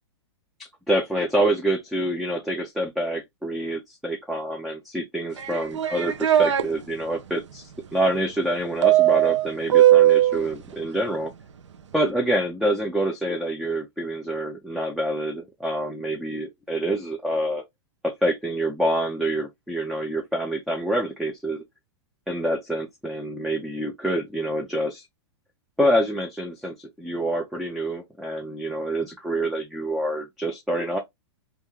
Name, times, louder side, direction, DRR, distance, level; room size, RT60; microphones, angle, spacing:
voice 1, 0.6-11.3 11.9-17.6 18.0-21.6 22.3-25.1 25.8-31.0, right 1 dB, ahead, 0.4 m, -26 dB
sound 1, 5.4-6.6 8.8-10.4, right 13 dB, 90° right, 0.5 m, -18 dB
2.4 x 2.1 x 3.0 m
hypercardioid pair, 125°, 15 cm